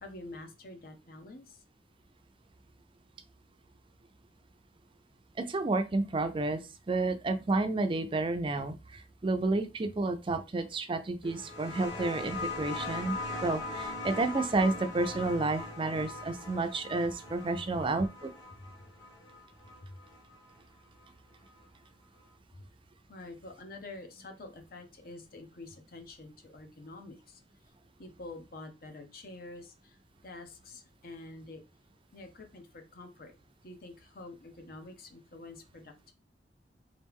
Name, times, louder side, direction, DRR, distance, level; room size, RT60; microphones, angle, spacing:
voice 1, 0.0-1.6 19.8-20.0 22.6-22.7 23.1-27.4 28.0-30.0 30.2-31.6 32.1-33.3 33.6-36.1, left 2 dB, 55° left, 5 dB, 0.9 m, -47 dB
voice 2, 5.4-6.6 6.9-18.3, right 2 dB, 30° right, 8 dB, 0.4 m, -31 dB
sound 1, 11.2-20.5 21.6-21.7, left 3 dB, 85° left, 1.3 m, -40 dB
3.6 x 3.2 x 3.5 m, 0.28 s
head